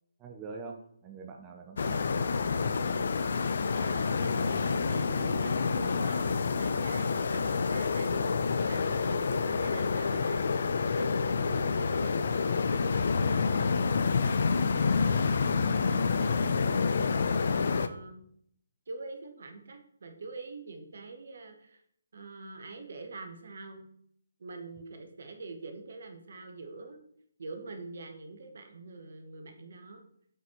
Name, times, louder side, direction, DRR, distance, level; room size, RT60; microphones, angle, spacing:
voice 1, 0.2-2.1 4.3-4.6 6.0-6.1, right 4 dB, 20° right, 2 dB, 0.6 m, -44 dB
sound 1, 1.8-17.9, left 5 dB, 60° left, 0.4 m, -28 dB
voice 2, 3.7-10.4 10.8-15.4 15.8-16.9 17.4-18.2 18.9-21.8 22.1-23.9 24.4-27.0 27.4-30.0, right 3 dB, 60° right, 6 dB, 1.0 m, -45 dB
8.1 x 4.2 x 3.0 m, 0.68 s
figure-of-eight pair, 145°, 0 cm